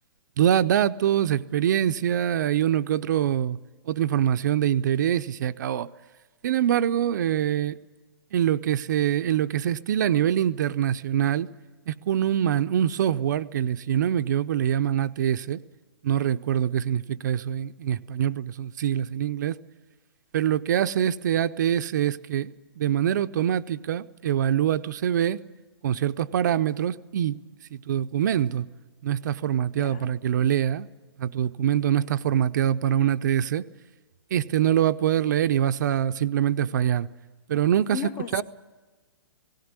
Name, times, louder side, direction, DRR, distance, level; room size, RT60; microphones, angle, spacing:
voice 1, 0.4-3.6 3.9-5.9 6.4-7.8 8.3-11.5 11.9-15.6 16.0-19.6 20.3-22.5 22.8-25.4 25.8-27.4 27.7-28.7 29.0-30.9 31.2-33.7 34.3-37.1 37.5-38.0 38.3-38.4, right 10 dB, 45° right, 0.5 m, -24 dB
voice 2, 29.7-30.1 37.9-38.4, left 9 dB, 25° left, 0.6 m, -35 dB
17.5 x 17.0 x 9.6 m
hypercardioid pair, 165°, 13 cm